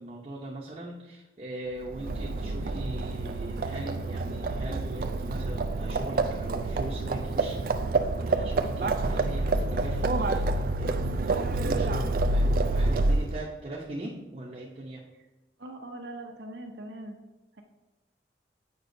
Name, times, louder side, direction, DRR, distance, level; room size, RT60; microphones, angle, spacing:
voice 1, 0.0-10.5 10.8-15.0, right 1 dB, 35° right, -5 dB, 0.7 m, -40 dB
Livestock farm animals working animals, 1.8-13.4, right 2 dB, 50° right, 0.3 m, -28 dB
voice 2, 15.6-17.2, right 1 dB, 80° right, 2 dB, 0.8 m, -41 dB
8.0 x 5.4 x 2.6 m, 1.1 s
head